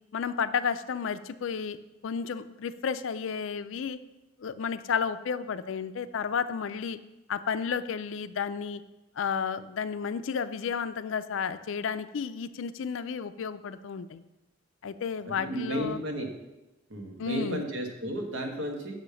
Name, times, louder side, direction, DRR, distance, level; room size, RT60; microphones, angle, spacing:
voice 1, 0.1-1.8 2.0-4.0 4.4-7.0 7.3-8.8 9.2-14.2 14.8-16.0 17.2-17.7, left 6 dB, 70° left, 13 dB, 0.4 m, -32 dB
voice 2, 15.3-16.3 16.9-18.9, right 1 dB, 70° right, 2 dB, 1.3 m, -33 dB
6.2 x 5.1 x 6.8 m, 0.99 s
head